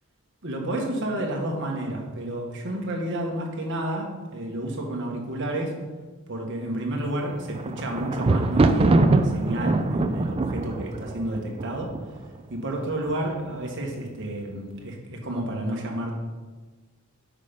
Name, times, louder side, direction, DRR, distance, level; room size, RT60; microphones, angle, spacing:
voice 1, 0.4-5.8 6.3-12.0 12.5-16.1, right 1 dB, 55° right, 1 dB, 1.3 m, -30 dB
Thunder, 7.2-12.4 13.1-13.6 13.9-14.0, right 2 dB, 25° right, 0.3 m, -23 dB
6.6 x 5.2 x 5.1 m, 1.3 s
head